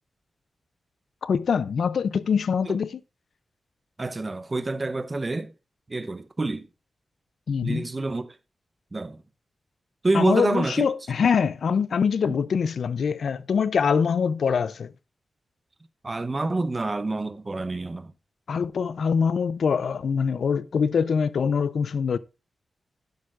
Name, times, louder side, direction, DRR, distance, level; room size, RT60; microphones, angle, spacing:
voice 1, 1.2-3.0 7.5-7.9 10.1-14.9 18.5-22.2, left 6 dB, 75° left, 0.5 m, -24 dB
voice 2, 4.0-5.5 5.9-6.7 7.6-8.3 8.9-9.2 10.0-10.9 16.0-18.1, right 2 dB, 30° right, 0.8 m, -27 dB
11.5 x 10.5 x 2.5 m
wide cardioid pair, 110°, 0 cm